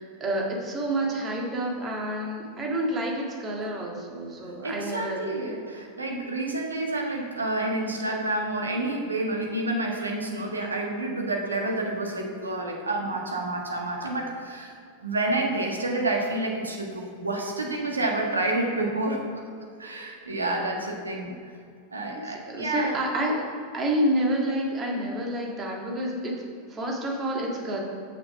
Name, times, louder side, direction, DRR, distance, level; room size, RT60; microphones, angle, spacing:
voice 1, 0.0-5.2 22.2-23.4 23.7-26.3 26.7-27.8, right 1 dB, 25° right, -1 dB, 1.8 m, -28 dB
voice 2, 4.6-14.7 15.0-19.2 19.8-21.3 21.9-23.0, right 2 dB, 75° right, 1 dB, 1.4 m, -29 dB
6.7 x 6.7 x 5.9 m, 2.3 s
figure-of-eight pair, 90°, 0 cm